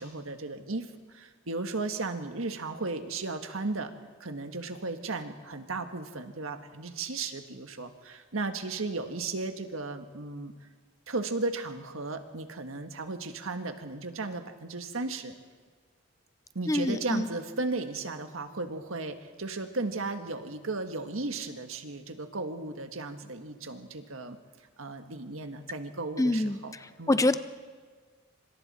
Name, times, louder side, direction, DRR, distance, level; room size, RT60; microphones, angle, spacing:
voice 1, 0.0-3.9 4.2-10.5 11.1-15.3 16.5-24.4 24.8-27.3, right 3 dB, 75° right, 7 dB, 1.6 m, -35 dB
voice 2, 16.7-17.3 26.2-26.6 27.1-27.3, left 2 dB, 15° left, 12 dB, 0.5 m, -25 dB
26.0 x 26.0 x 4.3 m, 1.5 s
head